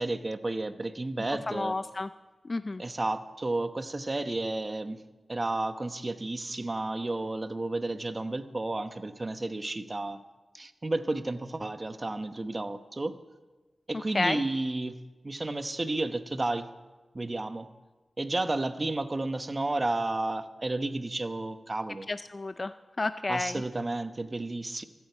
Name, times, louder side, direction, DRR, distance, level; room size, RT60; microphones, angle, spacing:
voice 1, 0.0-1.7 2.8-5.0 5.3-10.2 10.5-13.2 13.9-15.0 15.2-16.7 17.1-17.7 18.2-22.1 23.3-24.8, right 2 dB, 35° right, 10 dB, 0.9 m, -32 dB
voice 2, 1.5-2.1 2.5-2.8 14.1-14.4 22.1-22.7 23.0-23.6, left 3 dB, 45° left, 12 dB, 0.4 m, -30 dB
14.0 x 9.3 x 8.0 m, 1.2 s
cardioid pair, 55°, 0 cm